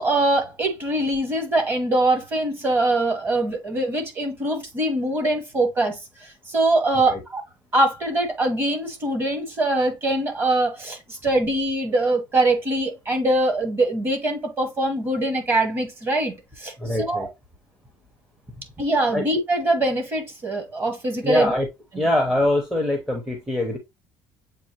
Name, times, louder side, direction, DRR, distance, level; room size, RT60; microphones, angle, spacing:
voice 1, 0.0-7.4 7.7-17.3 18.8-21.5, right 2 dB, 25° right, 1.3 m, -23 dB
voice 2, 16.8-17.3 19.1-19.2 21.2-21.7 22.0-23.8, left 1 dB, 5° right, 0.7 m, -23 dB
7.4 x 2.5 x 2.8 m
cardioid pair, 155°, 9 cm